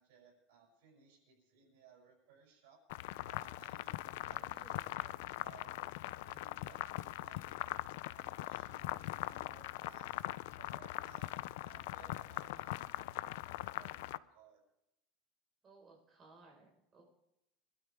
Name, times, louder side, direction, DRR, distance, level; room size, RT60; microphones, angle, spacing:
voice 1, 0.0-2.8 3.3-3.9 4.3-4.6 4.9-6.0 6.3-7.6 8.1-10.2 10.6-14.6, right 6 dB, 85° right, 0 dB, 6.9 m, -62 dB
sound 1, 2.9-14.2, left 17 dB, 80° left, 0.4 m, -41 dB
voice 2, 4.2-4.9 15.6-17.0, right 3 dB, 20° right, -1 dB, 5.0 m, -61 dB
25.0 x 12.0 x 3.6 m, 0.85 s
cardioid pair, 160°, 0 cm